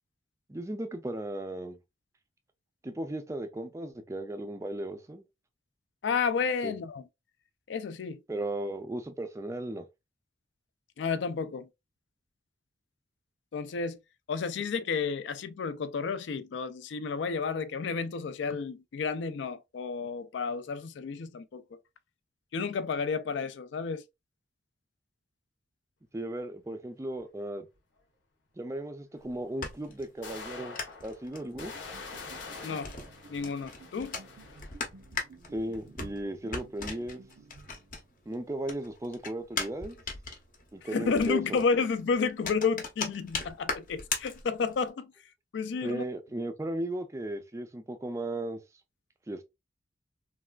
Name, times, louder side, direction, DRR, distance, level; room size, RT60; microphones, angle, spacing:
voice 1, 0.5-1.8 2.8-5.2 6.6-6.7 8.3-9.8 26.1-27.7 28.6-30.8 31.0-31.7 35.5-37.2 38.3-40.0 40.7-41.6 45.8-48.6 49.3-49.4, right 1 dB, 15° right, 0.3 m, -36 dB
voice 2, 6.0-7.0 7.7-8.2 11.0-11.7 13.5-14.0 14.3-21.8 22.5-24.0 32.6-32.9 33.3-34.2 40.8-45.1 45.5-46.0, left 5 dB, 70° left, 0.3 m, -31 dB
sound 1, 27.5-27.6 29.4-29.5 30.2-34.9, left 4 dB, 90° left, 0.9 m, -45 dB
sound 2, 29.2-38.3 38.6-44.9, left 4 dB, 45° left, 0.7 m, -39 dB
sound 3, 31.6-38.3, right 3 dB, 75° right, 0.5 m, -55 dB
3.3 x 2.3 x 2.2 m
head